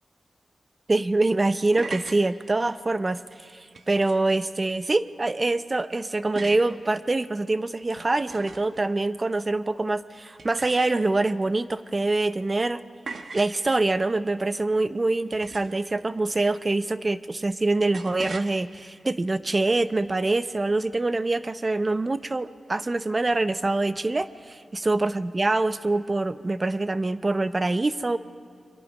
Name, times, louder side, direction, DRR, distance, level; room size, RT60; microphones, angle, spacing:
voice 1, 0.9-12.8 13.3-28.2, right 2 dB, 25° right, 13 dB, 0.6 m, -25 dB
sound 1, 1.8-2.2 3.7-4.4 6.4-6.7 7.8-8.8 10.4-11.2 13.1-13.6 15.3-15.9 17.9-18.5, right 4 dB, 60° right, 1.1 m, -40 dB
29.5 x 23.0 x 5.4 m, 2.5 s
wide cardioid pair, 165°, 0 cm